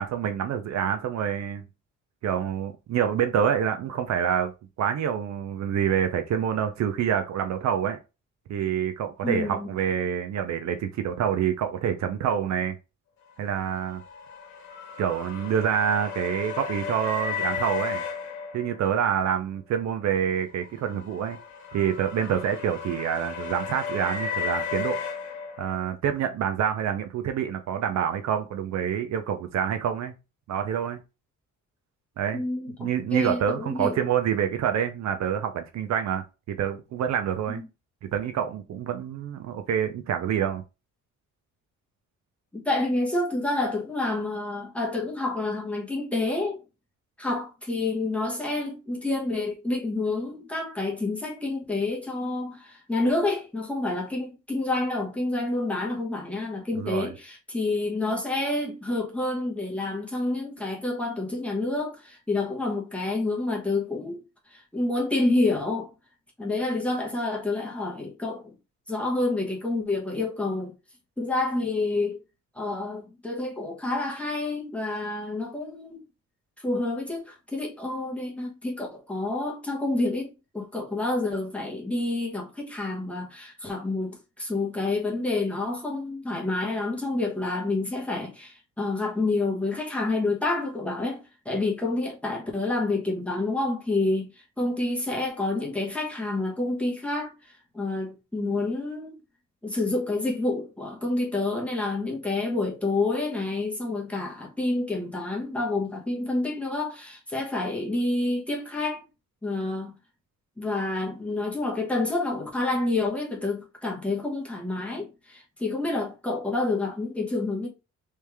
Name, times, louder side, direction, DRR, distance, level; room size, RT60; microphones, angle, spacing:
voice 1, 0.0-1.6 2.2-4.5 4.8-8.0 8.5-12.8 13.4-14.0 15.0-18.0 18.5-21.4 21.7-25.0 25.6-30.1 30.5-31.0 32.2-32.4 32.8-37.6 38.1-40.6 56.8-57.1, right 8 dB, 60° right, 0.6 m, -27 dB
voice 2, 9.2-9.7 32.3-34.0 37.5-37.7 42.5-46.6 47.2-64.2 64.5-65.9 66.4-68.5 68.9-70.7 71.2-72.2 72.5-76.0 76.6-94.3 94.6-97.3 97.7-99.2 99.6-109.0 109.4-109.9 110.6-117.7, left 2 dB, 5° left, 1.0 m, -28 dB
sound 1, 13.5-19.2 20.5-25.9, left 6 dB, 65° left, 1.1 m, -34 dB
3.3 x 3.2 x 3.4 m
cardioid pair, 170°, 31 cm